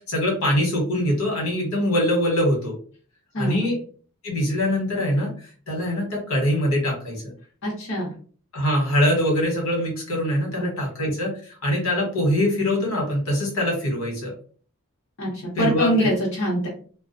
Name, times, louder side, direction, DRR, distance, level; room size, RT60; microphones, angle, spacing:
voice 1, 0.1-2.7 3.4-3.8 4.2-5.3 5.7-7.2 8.5-11.3 11.6-14.3 15.6-15.9, left 1 dB, 75° left, -1 dB, 1.1 m, -23 dB
voice 2, 3.3-3.7 7.6-8.1 10.6-10.7 15.2-16.7, equal, 55° left, -6 dB, 0.8 m, -24 dB
2.3 x 2.2 x 2.5 m, 0.43 s
head